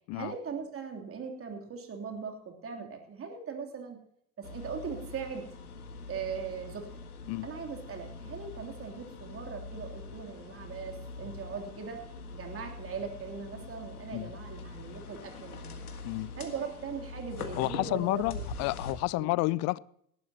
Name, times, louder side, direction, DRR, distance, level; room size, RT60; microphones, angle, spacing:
voice 1, 0.1-4.0 4.4-5.4 6.1-6.9 7.4-12.0 12.3-15.8 16.4-18.4 19.1-19.4, right 6 dB, 30° right, 3.2 m, -40 dB
sound 1, 4.4-18.9, left 3 dB, 90° left, 1.7 m, -43 dB
voice 2, 17.6-19.8, left 21 dB, 40° left, 0.4 m, -30 dB
18.0 x 12.5 x 2.9 m
hypercardioid pair, 85°, 43 cm